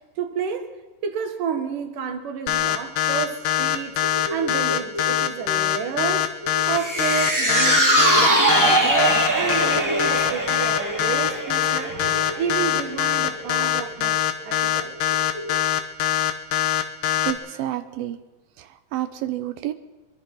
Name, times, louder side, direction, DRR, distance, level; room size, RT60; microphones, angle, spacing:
voice 1, 0.2-0.7 1.0-4.0 4.3-6.3 6.7-14.2 14.4-14.9, right 7 dB, 70° right, 7 dB, 3.4 m, -30 dB
sound 1, 2.5-17.3, left 12 dB, 75° left, 2.9 m, -22 dB
sound 2, 3.2-15.7, equal, 50° left, 4.4 m, -36 dB
sound 3, 6.7-13.1 13.5-13.6, right 1 dB, 5° right, 2.5 m, -22 dB
voice 2, 17.3-18.2 18.6-19.7, right 13 dB, 85° right, 9 dB, 2.8 m, -29 dB
24.0 x 22.5 x 5.7 m, 1.2 s
omnidirectional pair, 4.0 m